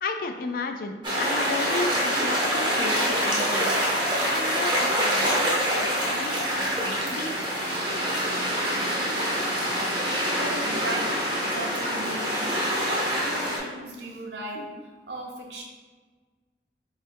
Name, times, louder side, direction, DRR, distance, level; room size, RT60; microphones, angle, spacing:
voice 1, 0.0-3.7 4.3-7.3, left 3 dB, 50° left, 5 dB, 0.3 m, -34 dB
sound 1, 1.0-13.6, equal, 25° right, 0.7 m, -25 dB
voice 2, 10.3-15.6, right 1 dB, 75° right, 0 dB, 0.7 m, -36 dB
3.5 x 2.3 x 4.3 m, 1.4 s
head